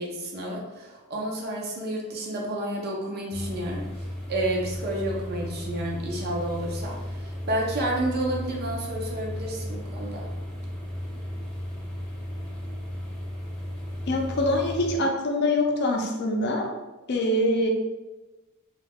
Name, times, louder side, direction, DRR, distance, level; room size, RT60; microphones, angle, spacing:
voice 1, 0.0-10.3, right 1 dB, 50° right, -1 dB, 0.5 m, -30 dB
sound 1, 3.3-15.0, equal, 5° left, 0.7 m, -35 dB
voice 2, 14.1-16.7 17.1-17.7, left 1 dB, 55° left, 1 dB, 0.5 m, -24 dB
2.3 x 2.2 x 3.4 m, 1.1 s
head